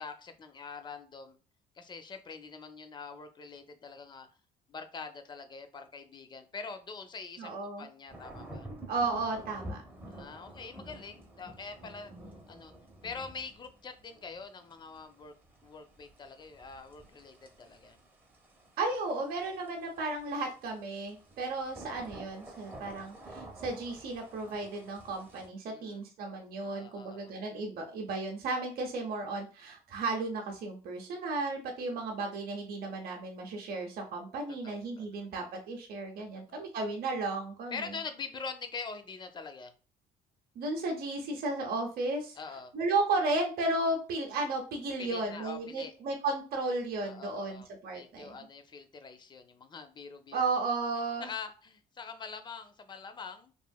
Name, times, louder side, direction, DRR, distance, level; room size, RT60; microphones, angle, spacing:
voice 1, 0.0-1.4 1.8-4.3 4.7-8.7 10.1-12.1 12.5-12.7 13.0-15.3 15.6-18.0 25.7-26.0 26.6-27.3 31.8-32.0 34.6-35.3 36.5-36.7 37.7-39.7 42.4-42.7 45.0-45.9 47.0-50.4 51.2-53.5, left 5 dB, 25° left, 8 dB, 0.4 m, -44 dB
voice 2, 7.4-7.9 8.9-9.8 18.8-38.0 40.6-42.4 42.7-48.4 50.3-51.3, right 3 dB, 60° right, 2 dB, 0.6 m, -34 dB
sound 1, 8.1-25.5, right 1 dB, 10° right, 0.7 m, -50 dB
3.0 x 2.6 x 2.2 m, 0.36 s
cardioid pair, 110°, 17 cm